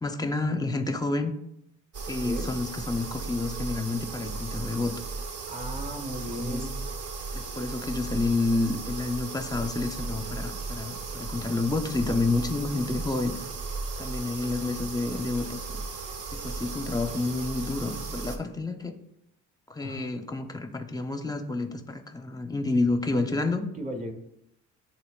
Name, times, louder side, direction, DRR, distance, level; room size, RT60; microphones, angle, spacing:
voice 1, 0.0-1.3 2.1-5.0 6.4-6.6 7.3-13.3 14.0-15.8 16.3-18.9 19.7-23.7, left 3 dB, 15° left, 7 dB, 0.7 m, -29 dB
sound 1, 1.9-18.4, right 4 dB, 55° right, 0.8 m, -36 dB
voice 2, 5.5-6.8 19.8-20.1 23.8-24.1, equal, 25° right, 4 dB, 1.3 m, -36 dB
11.0 x 3.7 x 2.4 m, 0.81 s
cardioid pair, 90°, 30 cm